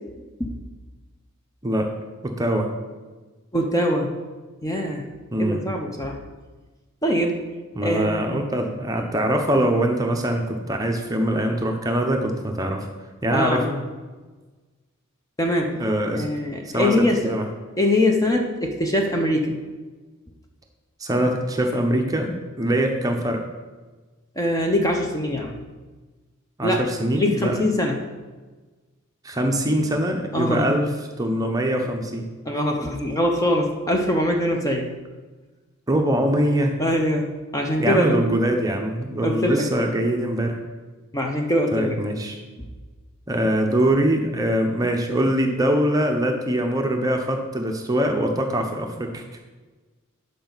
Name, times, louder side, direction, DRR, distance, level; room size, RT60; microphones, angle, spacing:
voice 1, 2.2-2.7 5.3-5.6 7.7-12.9 13.2-13.6 15.8-16.2 16.7-17.4 21.0-23.4 26.6-27.6 29.2-30.9 31.2-32.2 35.9-36.7 37.8-40.6 41.7-42.4 43.3-49.2, right 1 dB, 15° right, 3 dB, 0.8 m, -23 dB
voice 2, 3.5-4.2 4.6-5.1 5.4-6.2 7.0-7.4 7.8-8.3 13.3-13.8 15.4-15.8 16.2-17.3 17.8-19.5 24.4-25.5 26.6-26.9 27.1-28.0 30.3-30.7 32.5-34.9 36.8-38.2 39.2-39.7 41.1-42.0, left 1 dB, 15° left, 2 dB, 0.7 m, -23 dB
11.5 x 5.2 x 4.0 m, 1.3 s
head